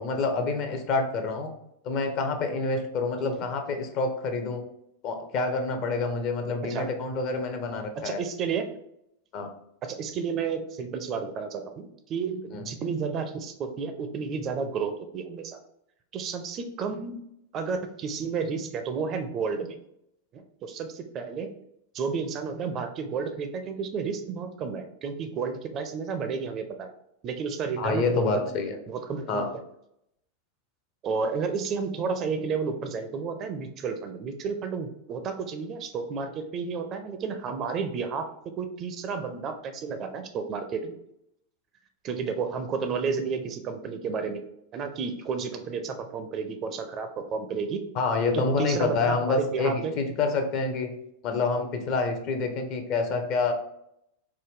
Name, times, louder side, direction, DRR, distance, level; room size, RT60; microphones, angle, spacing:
voice 1, 0.0-1.5 1.8-4.6 5.0-8.2 9.3-9.5 12.5-12.7 27.8-28.8 29.3-29.5 47.9-53.5, left 3 dB, 40° left, 6 dB, 0.6 m, -27 dB
voice 2, 8.0-8.7 9.8-15.6 16.1-17.2 17.5-19.8 20.3-21.5 21.9-26.9 27.2-28.5 28.9-29.5 31.0-38.3 38.6-40.9 42.0-44.4 44.7-47.9 48.6-49.9, right 5 dB, 30° right, 7 dB, 0.5 m, -31 dB
4.7 x 2.2 x 3.5 m, 0.77 s
figure-of-eight pair, 90°, 0 cm